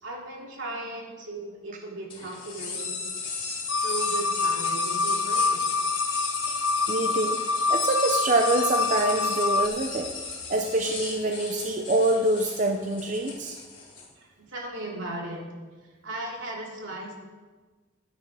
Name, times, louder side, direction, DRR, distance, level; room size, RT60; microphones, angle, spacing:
voice 1, 0.0-3.0 3.8-5.6 14.2-15.4 16.0-17.1, right 2 dB, 70° right, -2 dB, 3.0 m, -36 dB
sound 1, 2.1-14.0, left 4 dB, 25° left, 2.7 m, -34 dB
sound 2, 3.7-9.7, left 3 dB, 90° left, 0.7 m, -27 dB
voice 2, 6.9-7.4 7.7-10.1 10.5-13.6, right 2 dB, 40° right, 4 dB, 0.6 m, -25 dB
12.5 x 9.7 x 4.9 m, 1.3 s
head